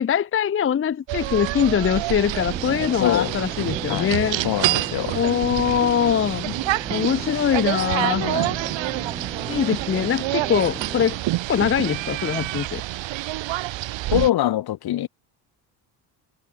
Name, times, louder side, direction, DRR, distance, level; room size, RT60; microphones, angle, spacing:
voice 1, 0.0-4.4 5.1-6.5 6.9-8.3 9.5-11.2 11.5-12.8, left 8 dB, 30° left, 0.7 m, -22 dB
sound 1, 1.1-14.3, right 17 dB, 75° right, 1.5 m, -27 dB
sound 2, 2.4-11.0, right 2 dB, 10° right, 7.3 m, -37 dB
voice 2, 3.0-3.3 3.9-4.2 4.4-5.2 6.5-6.6 8.2-8.6 14.1-15.1, left 13 dB, 55° left, 1.2 m, -24 dB
cardioid pair, 145°, 45 cm